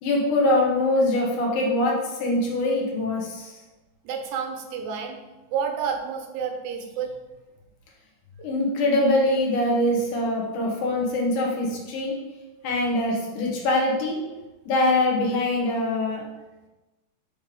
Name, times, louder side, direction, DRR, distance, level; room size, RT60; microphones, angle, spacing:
voice 1, 0.0-3.5 8.4-12.2 12.6-14.2 14.7-16.2, left 1 dB, 85° left, -1 dB, 2.7 m, -23 dB
voice 2, 4.0-5.2 5.5-7.1, right 6 dB, 90° right, 3 dB, 2.2 m, -30 dB
6.1 x 3.4 x 5.2 m, 1.1 s
omnidirectional pair, 3.4 m